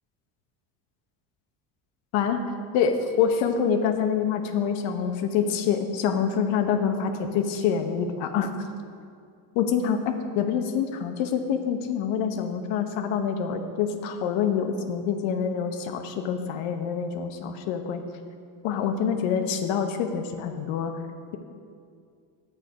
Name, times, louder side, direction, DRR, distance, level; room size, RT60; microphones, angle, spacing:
voice 1, 2.7-8.5 9.5-10.0 10.4-18.0 18.6-20.9, left 7 dB, 75° left, 6 dB, 1.0 m, -26 dB
9.4 x 8.4 x 4.8 m, 2.2 s
cardioid pair, 120°, 47 cm